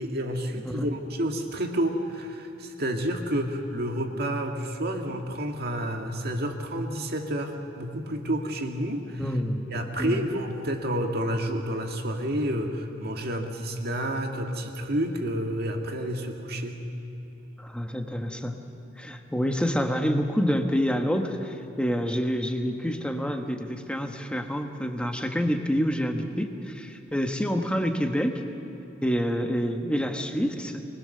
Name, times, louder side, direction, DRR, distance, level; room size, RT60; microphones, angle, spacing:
voice 1, 0.0-9.3 9.7-16.8, right 1 dB, 50° right, 3 dB, 1.9 m, -30 dB
voice 2, 9.2-9.6 10.0-10.2 17.6-18.6 19.0-28.4 29.0-30.8, equal, 5° left, 5 dB, 1.2 m, -27 dB
24.0 x 20.5 x 6.7 m, 2.8 s
head